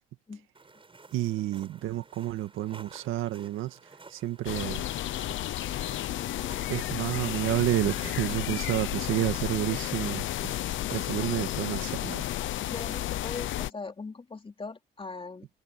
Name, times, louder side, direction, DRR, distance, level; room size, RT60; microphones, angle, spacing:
sound 1, 0.5-9.6, right 3 dB, 25° right, 6.0 m, -53 dB
voice 1, 1.1-3.8 4.1-4.9 6.7-12.3, right 14 dB, 90° right, 1.9 m, -30 dB
sound 2, 4.5-13.7, left 13 dB, 75° left, 0.8 m, -32 dB
voice 2, 12.7-15.5, left 4 dB, 25° left, 3.2 m, -40 dB
cardioid pair, 90°, 20 cm